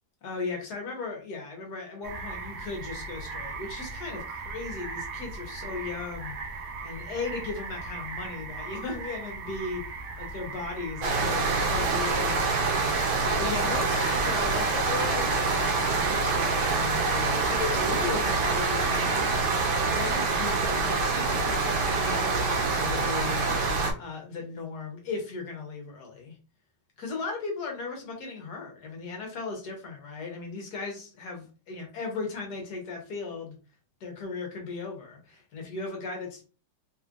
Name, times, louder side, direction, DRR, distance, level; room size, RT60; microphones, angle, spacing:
voice 1, 0.2-6.4 6.8-12.9 13.2-19.3 19.9-23.5 24.0-26.3 27.0-33.6 34.0-36.4, left 4 dB, 55° left, 2 dB, 1.4 m, -37 dB
sound 1, 2.0-20.7, right 4 dB, 85° right, 0.7 m, -38 dB
sound 2, 11.0-23.9, right 4 dB, 65° right, 1.1 m, -26 dB
3.5 x 3.1 x 2.5 m, 0.35 s
omnidirectional pair, 2.4 m